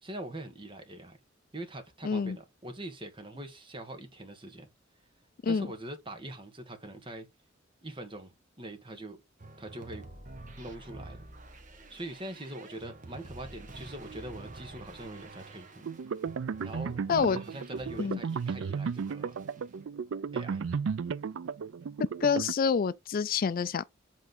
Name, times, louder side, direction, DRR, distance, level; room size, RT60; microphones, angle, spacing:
voice 1, 0.0-1.2 1.5-4.7 5.4-7.3 7.8-8.3 8.6-9.2 9.6-10.0 10.6-11.2 11.9-15.9 16.6-19.4 20.3-20.7, right 1 dB, 25° right, 1.7 m, -43 dB
voice 2, 2.0-2.4 5.4-5.7 17.1-17.4 18.0-18.2 22.0-23.8, left 6 dB, 45° left, 0.4 m, -27 dB
sound 1, 9.4-18.6 18.9-19.7, right 2 dB, 40° right, 1.4 m, -48 dB
sound 2, 15.8-22.5, right 6 dB, 80° right, 0.4 m, -34 dB
8.2 x 3.7 x 3.8 m
head